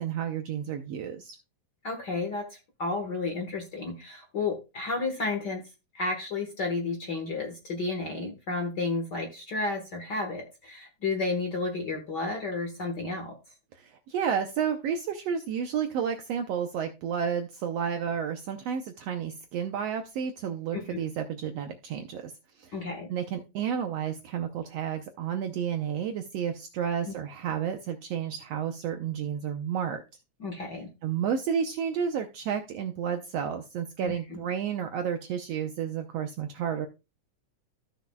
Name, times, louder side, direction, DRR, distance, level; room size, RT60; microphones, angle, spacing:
voice 1, 0.0-1.4 13.7-22.7 23.1-30.0 31.0-36.9, right 8 dB, 75° right, 6 dB, 1.5 m, -31 dB
voice 2, 1.8-5.6 5.9-13.4 20.7-21.0 22.7-23.1 30.4-30.9 34.0-34.4, left 3 dB, 50° left, 3 dB, 1.4 m, -32 dB
14.5 x 6.2 x 2.2 m, 0.27 s
omnidirectional pair, 3.5 m